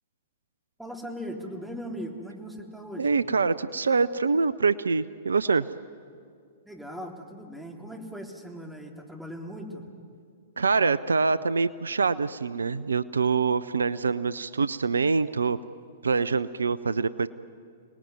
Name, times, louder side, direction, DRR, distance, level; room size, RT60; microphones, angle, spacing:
voice 1, 0.8-3.2 6.6-9.9, equal, 5° right, 1 dB, 3.4 m, -39 dB
voice 2, 3.0-5.7 10.6-15.6 16.0-17.3, right 4 dB, 75° right, 16 dB, 0.6 m, -25 dB
30.0 x 19.5 x 9.4 m, 2.2 s
figure-of-eight pair, 110°, 0 cm